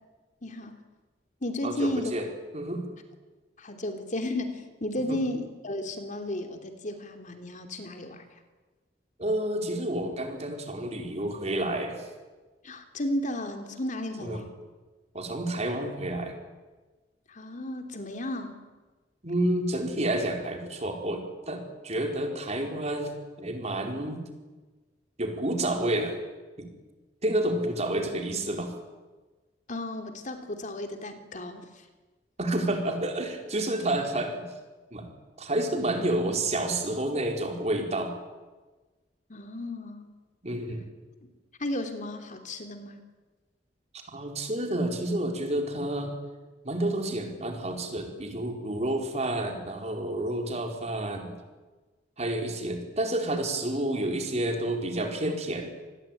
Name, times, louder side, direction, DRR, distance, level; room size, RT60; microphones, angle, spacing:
voice 1, 0.4-0.7 1.4-2.2 3.6-8.2 12.6-14.5 17.3-18.6 29.7-31.7 39.3-40.1 41.6-43.0, left 1 dB, 45° left, 6 dB, 3.0 m, -33 dB
voice 2, 1.6-2.3 2.5-2.9 5.1-5.2 9.2-12.1 14.2-14.4 15.1-16.4 19.2-24.2 25.2-26.2 26.6-26.7 27.2-28.7 32.4-34.5 34.9-35.1 35.4-38.1 40.4-40.8 44.1-46.2 46.6-51.3 52.2-55.7, right 1 dB, 40° right, 3 dB, 4.6 m, -29 dB
27.5 x 20.5 x 9.3 m, 1.3 s
head